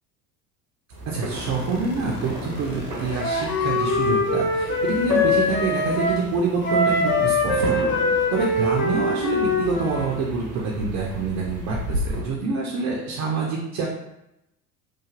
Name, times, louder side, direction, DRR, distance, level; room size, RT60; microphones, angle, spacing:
sound 1, 0.9-12.2, right 1 dB, 80° right, 0.9 m, -34 dB
voice 1, 1.1-7.6 8.3-13.9, right 4 dB, 35° right, -3 dB, 0.6 m, -26 dB
sound 2, 1.3-4.0, left 1 dB, 40° left, 1.2 m, -36 dB
Wind instrument woodwind instrument, 3.2-6.2 6.6-10.1, left 2 dB, 25° left, 0.6 m, -23 dB
3.1 x 2.3 x 2.4 m, 0.87 s
figure-of-eight pair, 70°, 46 cm